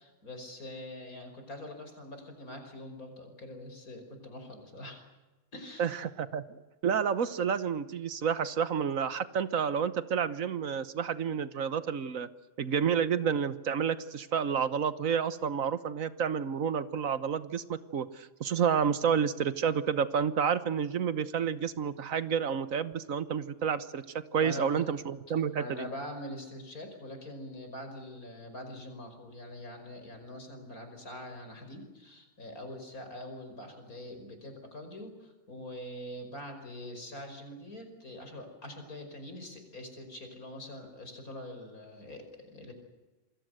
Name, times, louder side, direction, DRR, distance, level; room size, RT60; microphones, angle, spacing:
voice 1, 0.0-5.0 5.5-5.9 24.4-24.9 25.5-42.7, left 1 dB, 80° left, 6 dB, 5.7 m, -44 dB
voice 2, 5.8-12.3 12.6-24.0 24.3-25.9, right 7 dB, 70° right, 14 dB, 1.5 m, -30 dB
27.5 x 21.0 x 7.9 m, 1.2 s
omnidirectional pair, 1.5 m